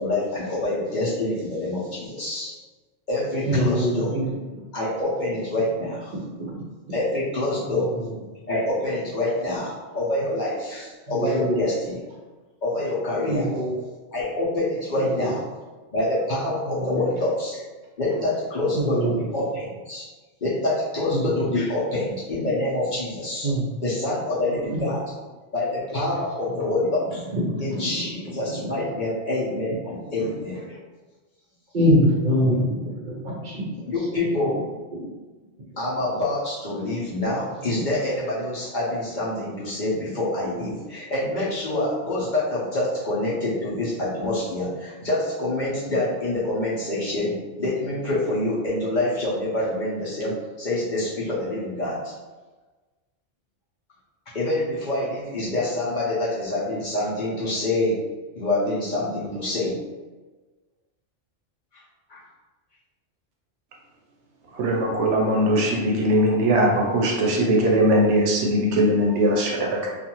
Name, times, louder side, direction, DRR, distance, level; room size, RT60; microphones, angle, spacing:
voice 1, 0.0-2.6 3.1-4.2 4.7-6.1 6.9-7.9 8.5-12.0 12.6-13.5 14.1-15.4 15.9-17.6 18.0-20.1 20.4-25.0 25.5-27.2 27.6-30.8 33.8-34.6 35.8-52.1 54.3-58.0 58.3-59.8 61.7-61.8 62.1-62.2, left 1 dB, 50° left, -8 dB, 0.7 m, -26 dB
voice 2, 3.5-4.2 6.1-6.5 11.1-11.6 13.3-13.7 16.8-17.0 18.7-19.2 21.1-21.2 23.4-23.6 24.7-24.8 27.5-27.9 31.7-33.6, equal, 50° right, -4 dB, 0.6 m, -23 dB
voice 3, 64.5-69.9, right 1 dB, 75° right, -1 dB, 0.9 m, -20 dB
2.5 x 2.3 x 2.9 m, 1.3 s
omnidirectional pair, 1.2 m